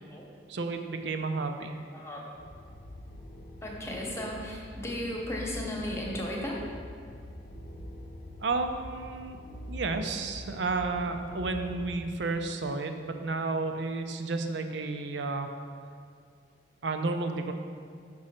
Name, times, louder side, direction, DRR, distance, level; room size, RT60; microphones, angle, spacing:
voice 1, 0.5-1.7 8.4-9.4 9.7-15.5 16.8-17.5, right 3 dB, 70° right, 6 dB, 0.6 m, -32 dB
voice 2, 1.9-2.3 3.6-6.6, left 1 dB, 15° left, -1 dB, 1.1 m, -35 dB
sound 1, 2.3-12.0, equal, 50° left, 0.7 m, -44 dB
6.2 x 6.2 x 4.3 m, 2.2 s
head